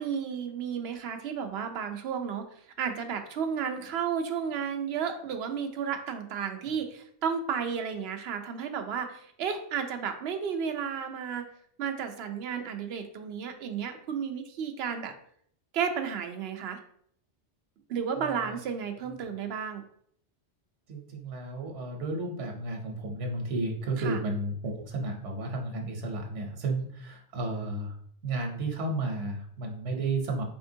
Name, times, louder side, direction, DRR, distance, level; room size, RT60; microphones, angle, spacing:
voice 1, 0.0-11.5 11.8-15.1 15.7-16.8 17.9-19.8 24.0-24.2, right 7 dB, 70° right, 7 dB, 0.8 m, -33 dB
voice 2, 18.2-18.6 20.9-27.9 28.2-30.4, right 2 dB, 90° right, 2 dB, 1.1 m, -33 dB
4.2 x 3.6 x 2.6 m, 0.64 s
omnidirectional pair, 1.2 m